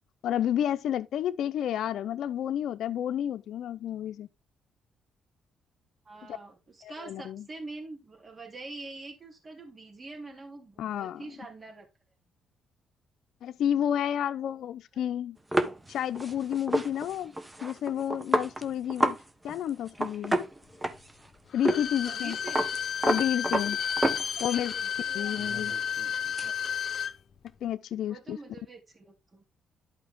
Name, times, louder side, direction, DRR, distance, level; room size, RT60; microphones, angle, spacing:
voice 1, 0.2-4.3 6.8-7.4 10.8-11.2 13.4-15.4 15.9-17.3 17.6-19.2 19.4-20.4 21.5-22.4 23.0-23.8 24.4-24.7 25.1-25.7 27.6-28.4, left 10 dB, 75° left, 0.6 m, -30 dB
voice 2, 6.0-11.9 22.0-22.7 24.4-24.9 28.1-29.4, right 3 dB, 30° right, 3.4 m, -45 dB
sound 1, 15.5-19.2 19.5-19.6 19.9-21.3 21.6-21.8 22.1-24.7 25.1-26.5, right 1 dB, 15° right, 1.3 m, -30 dB
Bowed string instrument, 21.5-27.1 27.5-27.6, left 8 dB, 50° left, 1.1 m, -32 dB
11.5 x 5.2 x 3.7 m
cardioid pair, 90°, 0 cm